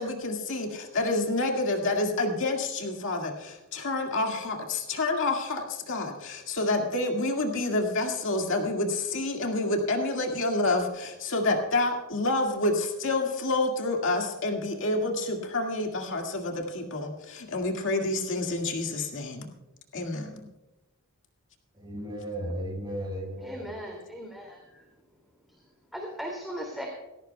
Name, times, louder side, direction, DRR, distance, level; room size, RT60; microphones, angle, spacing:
voice 1, 0.0-19.5 19.9-20.5, left 2 dB, 60° left, 2 dB, 2.0 m, -28 dB
voice 2, 21.7-23.8, equal, 20° right, 0 dB, 5.9 m, -35 dB
voice 3, 23.4-24.9 25.5-25.6 25.9-26.9, equal, ahead, -1 dB, 2.5 m, -38 dB
20.5 x 17.0 x 2.3 m, 1.0 s
head